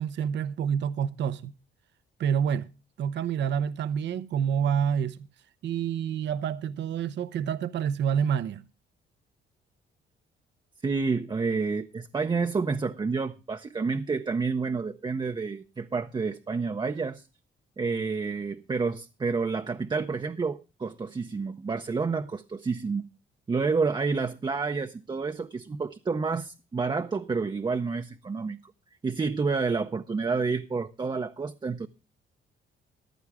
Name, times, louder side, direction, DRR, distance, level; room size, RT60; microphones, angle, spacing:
voice 1, 0.0-1.5 2.2-2.7 3.0-5.2 5.6-8.6, right 8 dB, 65° right, 0.7 m, -28 dB
voice 2, 10.8-17.2 17.8-23.1 23.5-28.6 29.0-31.9, right 4 dB, 25° right, 0.6 m, -29 dB
14.5 x 11.0 x 3.5 m
cardioid pair, 90°, 20 cm